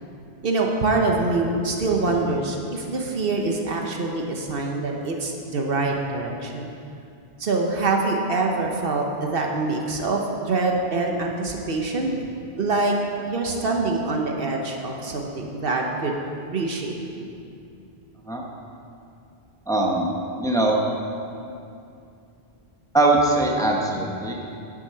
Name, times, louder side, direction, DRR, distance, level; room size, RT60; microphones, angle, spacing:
voice 1, 0.4-6.7 7.4-12.1 12.6-13.0 13.3-16.1 16.5-17.3, right 3 dB, 60° right, 1 dB, 1.1 m, -25 dB
voice 2, 19.7-20.1 20.4-20.8 22.9-24.4, right 2 dB, 5° left, -1 dB, 0.9 m, -21 dB
9.1 x 7.7 x 5.7 m, 2.6 s
omnidirectional pair, 1.1 m